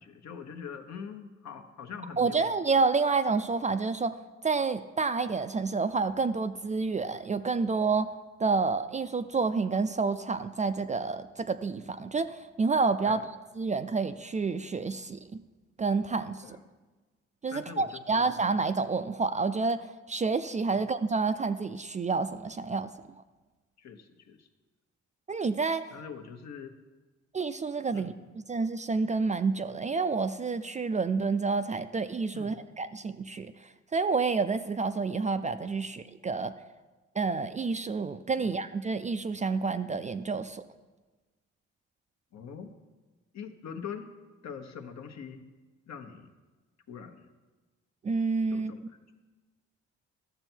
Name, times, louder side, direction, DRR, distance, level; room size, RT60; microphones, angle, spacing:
voice 1, 0.0-2.5 13.0-13.2 16.4-16.6 17.5-18.3 20.7-20.8 23.8-24.5 25.9-26.7 27.9-28.1 32.3-32.6 38.4-38.5 42.3-42.7 43.3-44.1 44.4-45.5 45.9-46.3 46.9-47.3 48.5-49.0, left 6 dB, 60° left, 6 dB, 1.0 m, -43 dB
voice 2, 2.2-4.2 4.4-8.1 8.4-13.2 13.6-15.4 15.8-16.6 17.4-22.9 25.3-25.8 27.3-28.1 28.5-36.5 37.2-40.6 48.0-48.7, right 4 dB, 25° right, 10 dB, 0.3 m, -29 dB
12.5 x 6.8 x 4.5 m, 1.2 s
cardioid pair, 90°, 30 cm